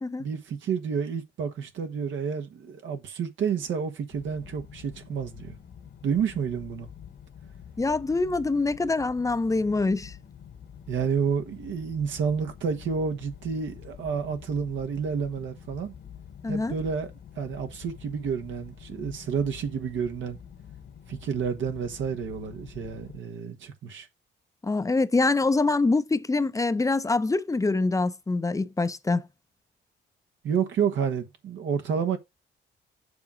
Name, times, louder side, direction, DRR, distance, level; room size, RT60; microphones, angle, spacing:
voice 1, 0.2-5.6 6.0-6.9 10.9-15.9 16.5-17.1 17.3-20.4 21.1-24.1 30.4-32.2, right 6 dB, 70° right, 1.4 m, -30 dB
sound 1, 4.1-23.2, left 8 dB, 60° left, 1.4 m, -47 dB
voice 2, 7.8-10.1 16.4-16.7 24.6-29.2, left 3 dB, 15° left, 0.7 m, -25 dB
7.0 x 3.8 x 6.2 m
cardioid pair, 90°, 20 cm